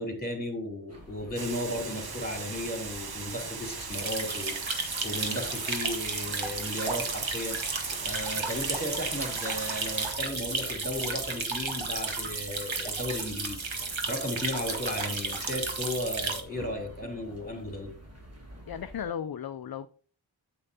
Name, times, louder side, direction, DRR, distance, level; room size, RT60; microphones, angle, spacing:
voice 1, 0.0-7.6 8.0-17.9, left 1 dB, 20° left, 3.1 m, -35 dB
sound 1, 0.9-19.0, left 1 dB, 30° right, 2.0 m, -49 dB
Water, 1.4-10.2, right 5 dB, 55° right, 0.8 m, -39 dB
sound 2, 3.9-16.4, right 4 dB, 80° right, 1.1 m, -33 dB
voice 2, 18.7-19.9, left 8 dB, 55° left, 0.5 m, -35 dB
8.6 x 8.0 x 2.8 m
wide cardioid pair, 50°, 46 cm